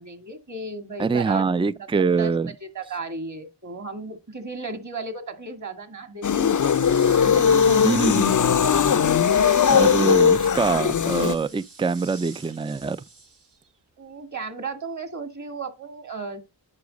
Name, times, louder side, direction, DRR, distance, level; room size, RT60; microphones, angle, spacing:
voice 1, 0.0-1.4 2.2-2.3 2.6-6.8 7.2-10.0 14.0-16.4, right 3 dB, 40° right, 2.1 m, -35 dB
voice 2, 1.0-2.5 7.8-8.3 9.7-13.0, right 4 dB, 10° right, 0.4 m, -24 dB
sound 1, 6.2-11.4, left 7 dB, 45° left, 0.5 m, -19 dB
sound 2, 6.4-13.7, right 4 dB, 65° right, 1.5 m, -45 dB
9.8 x 4.8 x 5.2 m
cardioid pair, 40°, 45 cm